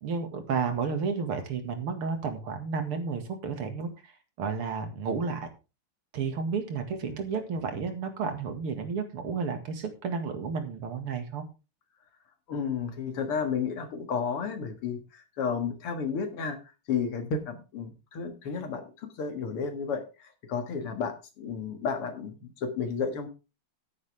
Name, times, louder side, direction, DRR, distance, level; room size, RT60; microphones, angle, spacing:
voice 1, 0.0-4.1 4.4-5.5 6.1-11.5, right 5 dB, 85° right, 7 dB, 2.9 m, -32 dB
voice 2, 12.5-23.3, left 6 dB, 90° left, 7 dB, 2.8 m, -32 dB
11.5 x 10.5 x 3.5 m, 0.30 s
omnidirectional pair, 2.4 m